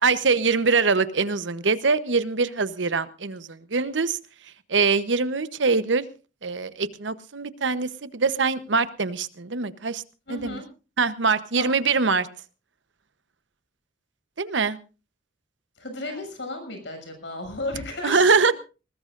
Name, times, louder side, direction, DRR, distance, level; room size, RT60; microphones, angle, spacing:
voice 1, 0.0-4.2 4.7-6.0 6.4-10.0 10.3-10.6 11.0-12.3 14.4-14.8 18.0-18.5, right 4 dB, 75° right, 14 dB, 1.0 m, -23 dB
voice 2, 10.3-10.7 11.6-11.7 15.8-18.5, left 2 dB, 70° left, 6 dB, 6.8 m, -34 dB
20.5 x 20.0 x 2.5 m, 0.34 s
head